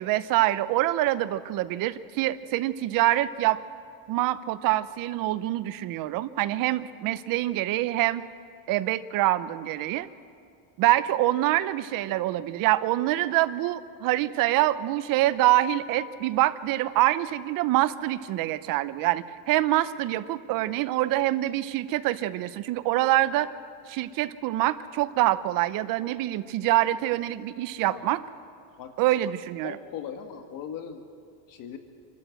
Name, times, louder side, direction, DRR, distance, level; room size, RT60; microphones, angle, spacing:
voice 1, 0.0-3.6 4.1-8.2 8.7-10.1 10.8-23.5 23.9-28.2 29.0-29.8, right 15 dB, 55° right, 14 dB, 0.8 m, -25 dB
voice 2, 29.6-31.0 31.5-31.8, left 8 dB, 55° left, 6 dB, 1.5 m, -38 dB
26.5 x 12.5 x 7.8 m, 2.3 s
cardioid pair, 140°, 40 cm